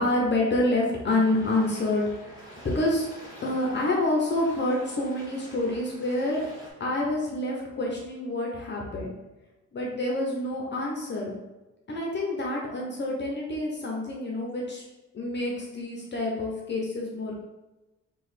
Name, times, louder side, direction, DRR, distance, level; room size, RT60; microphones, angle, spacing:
voice 1, 0.0-2.3 2.6-3.1 3.4-6.4 6.8-9.1 9.7-11.4 11.9-14.8 15.1-17.5, left 2 dB, 35° left, -2 dB, 0.7 m, -27 dB
sound 1, 1.1-6.7, equal, 10° right, 1.5 m, -47 dB
3.0 x 2.4 x 4.1 m, 1.1 s
cardioid pair, 90°, 30 cm